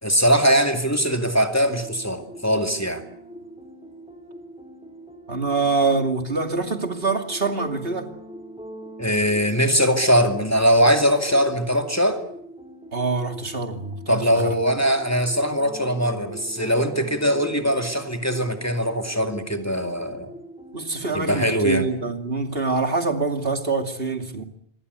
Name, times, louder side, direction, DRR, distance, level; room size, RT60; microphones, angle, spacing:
voice 1, 0.0-3.0 9.0-12.2 14.1-20.3 21.1-21.9, equal, 15° left, 2.5 m, -21 dB
sound 1, 1.6-21.6, right 1 dB, 5° right, 3.5 m, -42 dB
voice 2, 5.3-8.1 12.9-14.8 20.7-24.4, right 3 dB, 70° right, 2.9 m, -25 dB
26.0 x 22.5 x 8.2 m
omnidirectional pair, 1.0 m